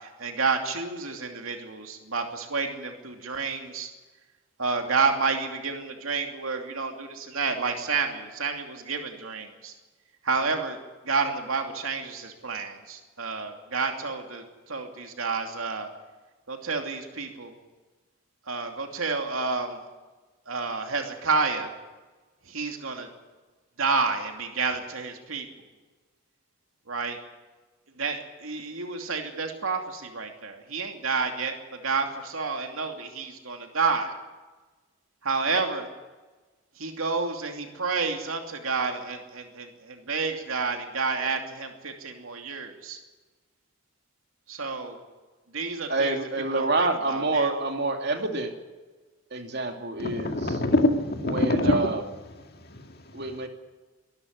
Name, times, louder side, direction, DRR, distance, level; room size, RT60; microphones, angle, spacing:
voice 1, 0.0-3.9 4.6-9.7 10.2-10.8 11.0-14.4 14.7-15.9 16.5-17.5 18.5-19.8 20.5-21.7 22.5-23.1 23.8-25.5 26.9-27.2 28.0-31.5 31.8-34.1 35.2-35.9 36.8-43.0 44.5-45.0 45.5-46.2 46.5-47.5 51.7-51.8, right 4 dB, 90° right, 4 dB, 2.8 m, -30 dB
voice 2, 45.9-48.5 49.3-50.4 51.3-52.0 53.1-53.5, right 2 dB, 55° right, 4 dB, 2.7 m, -27 dB
voice 3, 50.0-51.9 52.3-53.5, left 1 dB, 50° left, 5 dB, 2.1 m, -26 dB
24.0 x 13.0 x 9.6 m, 1.3 s
head